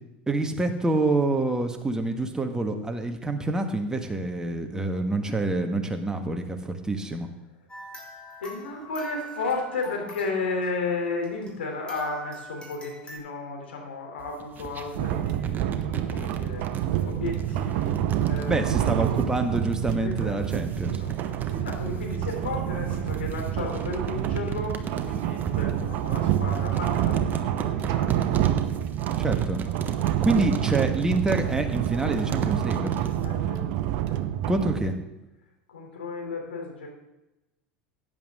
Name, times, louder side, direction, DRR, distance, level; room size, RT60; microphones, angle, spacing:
voice 1, 0.3-7.3 18.5-21.0 29.2-29.6 30.2-33.0 34.5-35.0, right 2 dB, 10° right, 4 dB, 1.6 m, -27 dB
sound 1, 7.7-11.6 11.9-13.2, right 2 dB, 15° left, 4.2 m, -43 dB
voice 2, 8.4-17.9 18.2-18.6 19.2-19.3 20.0-21.1 21.5-24.8 25.0-28.3 33.2-33.7 34.0-34.2 35.7-36.9, left 3 dB, 85° left, 1 dB, 3.3 m, -34 dB
sound 2, 14.2-33.3, right 7 dB, 35° right, 1.2 m, -36 dB
sound 3, 14.9-34.9, right 11 dB, 60° right, 0.8 m, -27 dB
14.0 x 9.7 x 3.7 m, 0.96 s
hypercardioid pair, 85°, 6 cm